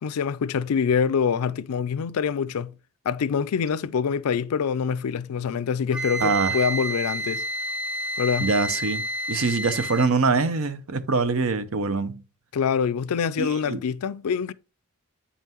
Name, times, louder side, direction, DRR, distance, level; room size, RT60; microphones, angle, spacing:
voice 1, 0.0-2.7 3.1-7.4 8.2-8.5 12.5-14.5, left 6 dB, 75° left, 0.4 m, -25 dB
Wind instrument woodwind instrument, 5.9-10.1, right 1 dB, 5° right, 0.5 m, -29 dB
voice 2, 6.2-6.6 8.4-9.0 9.3-12.2 13.4-13.8, right 4 dB, 65° right, 0.7 m, -24 dB
8.4 x 5.5 x 3.0 m
head